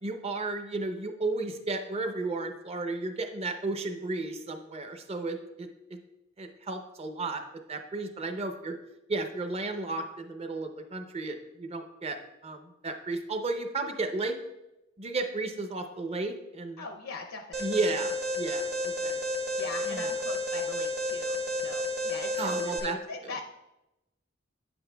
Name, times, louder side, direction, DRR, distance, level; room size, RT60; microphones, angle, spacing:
voice 1, 0.0-6.0 6.4-7.4 7.7-8.8 9.1-12.2 12.4-14.3 15.0-16.8 17.6-19.2 19.9-20.1 22.4-23.0, right 3 dB, 30° right, 6 dB, 0.6 m, -33 dB
voice 2, 16.8-17.9 19.6-23.4, left 3 dB, 70° left, 3 dB, 0.6 m, -41 dB
Alarm, 17.5-22.8, left 1 dB, 55° right, 1.5 m, -31 dB
9.2 x 7.9 x 2.2 m, 0.93 s
head